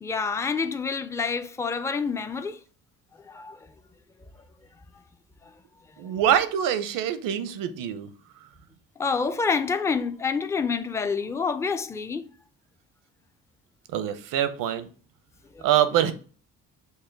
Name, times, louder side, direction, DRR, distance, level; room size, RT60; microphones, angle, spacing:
voice 1, 0.0-2.6 3.2-3.6 9.0-12.3 15.6-15.7, left 5 dB, 10° left, 0.3 m, -27 dB
voice 2, 6.0-8.1 13.9-14.9 15.6-16.1, right 10 dB, 80° right, 0.7 m, -24 dB
5.6 x 2.1 x 4.4 m
cardioid pair, 105°, 33 cm